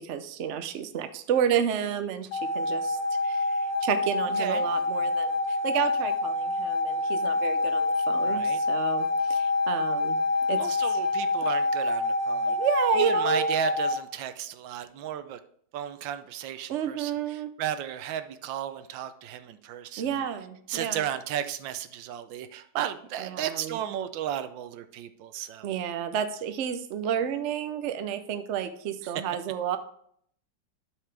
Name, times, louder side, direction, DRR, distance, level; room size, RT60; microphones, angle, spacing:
voice 1, 0.0-3.0 3.2-10.2 10.5-11.0 12.5-13.6 16.7-17.5 20.0-21.1 23.2-23.8 25.6-29.8, right 8 dB, 65° right, 9 dB, 0.7 m, -31 dB
sound 1, 2.3-14.0, left 2 dB, 75° left, 1.4 m, -26 dB
voice 2, 4.4-4.7 8.2-8.6 10.6-12.6 12.9-15.4 15.7-20.1 20.7-25.7 29.0-29.1, right 10 dB, 85° right, 10 dB, 1.4 m, -34 dB
12.0 x 4.9 x 3.4 m, 0.65 s
omnidirectional pair, 2.0 m